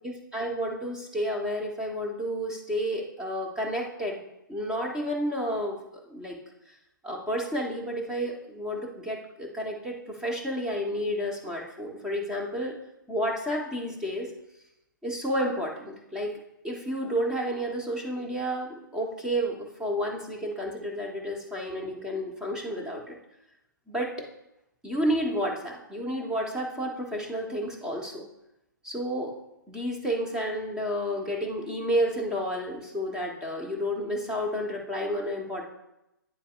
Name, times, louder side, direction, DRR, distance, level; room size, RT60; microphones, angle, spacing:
voice 1, 0.0-4.2 4.5-5.8 6.1-6.4 7.0-12.7 13.1-14.3 15.0-16.3 16.6-23.2 23.9-24.3 24.8-28.2 28.8-29.3 29.7-35.6, equal, 5° right, -1 dB, 1.1 m, -31 dB
9.2 x 7.1 x 2.5 m, 0.88 s
figure-of-eight pair, 125°, 11 cm